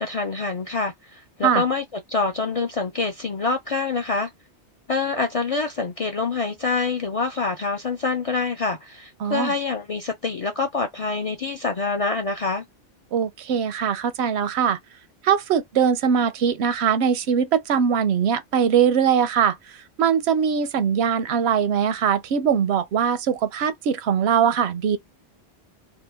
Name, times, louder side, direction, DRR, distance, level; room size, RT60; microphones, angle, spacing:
voice 1, 0.0-4.3 4.9-12.6, left 4 dB, 55° left, 0.4 m, -26 dB
voice 2, 9.2-9.5 13.1-14.8 15.2-25.0, right 7 dB, 80° right, 0.8 m, -21 dB
2.9 x 2.2 x 3.3 m
omnidirectional pair, 1.1 m